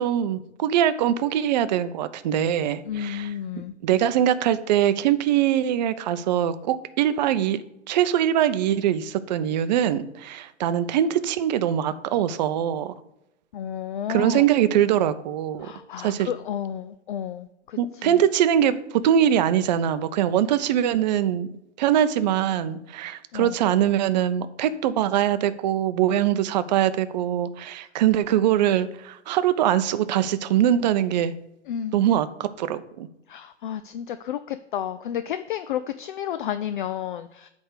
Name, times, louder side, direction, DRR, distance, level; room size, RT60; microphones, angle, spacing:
voice 1, 0.0-7.6 7.9-12.9 14.1-15.7 16.0-16.3 17.8-21.5 21.8-31.3 31.9-33.1, right 10 dB, 40° right, 12 dB, 0.6 m, -22 dB
voice 2, 2.9-3.7 13.5-14.4 15.6-18.2 23.3-23.6 31.7-32.0 33.3-37.5, left 10 dB, 45° left, 12 dB, 0.4 m, -31 dB
8.6 x 3.5 x 6.6 m, 0.87 s
figure-of-eight pair, 115°, 36 cm